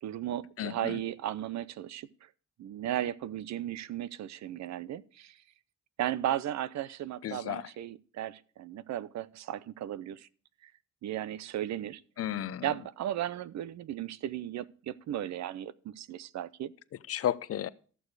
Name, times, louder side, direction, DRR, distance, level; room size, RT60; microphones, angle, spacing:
voice 1, 0.0-2.3 2.6-5.4 6.0-10.3 10.6-10.7 11.0-12.0 12.6-16.7, right 12 dB, 65° right, 0.6 m, -35 dB
voice 2, 0.6-1.0 7.2-7.6 12.2-12.7 17.1-17.7, left 11 dB, 50° left, 0.6 m, -33 dB
13.5 x 6.8 x 4.7 m
cardioid pair, 90°, 30 cm